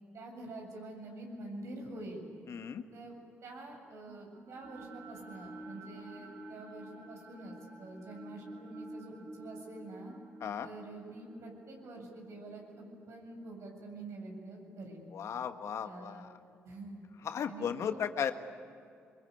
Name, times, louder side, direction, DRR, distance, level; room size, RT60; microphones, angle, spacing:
voice 1, 0.1-2.2 2.9-3.1 3.4-10.1 10.6-15.1 15.8-16.3 16.6-17.0 17.5-18.0, right 2 dB, 65° right, 1 dB, 7.7 m, -46 dB
voice 2, 2.5-2.8 10.4-10.7 15.1-16.3 17.2-18.3, left 8 dB, 65° left, 8 dB, 1.5 m, -35 dB
sound 1, 4.0-14.2, right 2 dB, 45° right, 4.4 m, -50 dB
24.0 x 24.0 x 9.7 m, 2.4 s
supercardioid pair, 55°, 5 cm